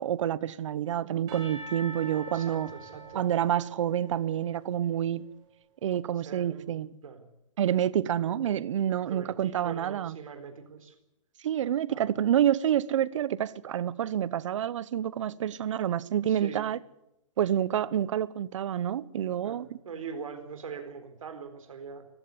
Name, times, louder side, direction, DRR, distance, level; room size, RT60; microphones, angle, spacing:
voice 1, 0.0-2.7 3.1-5.2 5.8-6.9 7.6-10.1 11.4-16.8 17.4-19.7, right 10 dB, 65° right, 1.0 m, -28 dB
Percussion / Church bell, 1.3-5.2, right 3 dB, 25° right, 6.9 m, -45 dB
voice 2, 2.3-3.2 6.2-6.7 7.0-7.3 8.1-8.4 8.9-11.0 11.9-12.1 16.3-16.7 19.4-22.1, right 5 dB, 85° right, 4.3 m, -42 dB
20.0 x 15.0 x 9.8 m
hypercardioid pair, 145°, 17 cm